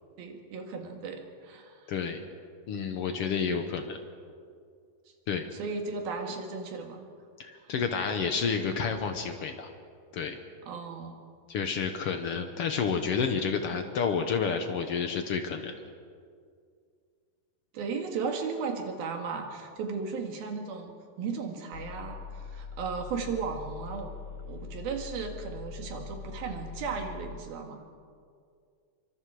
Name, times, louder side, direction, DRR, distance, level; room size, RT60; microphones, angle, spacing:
voice 1, 0.2-1.9 5.5-7.1 7.5-7.7 10.7-11.2 17.7-24.1 24.5-27.8, right 5 dB, 85° right, 3 dB, 3.9 m, -36 dB
voice 2, 1.9-2.2 2.7-4.0 5.3-5.5 7.4-9.7 10.1-10.4 11.5-15.7, left 6 dB, 70° left, 6 dB, 1.4 m, -30 dB
sound 1, 21.7-27.4, left 6 dB, 90° left, 2.7 m, -42 dB
26.5 x 24.5 x 4.9 m, 2.2 s
omnidirectional pair, 4.1 m